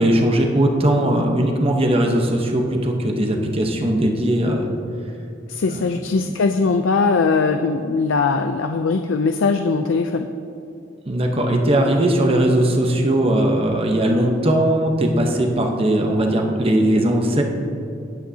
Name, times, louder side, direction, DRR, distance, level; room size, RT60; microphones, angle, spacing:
voice 1, 0.0-4.7 5.7-5.8 6.3-6.4 11.1-17.4, right 1 dB, 30° right, 2 dB, 1.0 m, -19 dB
voice 2, 5.5-10.3, left 4 dB, 80° left, 6 dB, 0.5 m, -20 dB
18.5 x 8.6 x 2.8 m, 2.6 s
head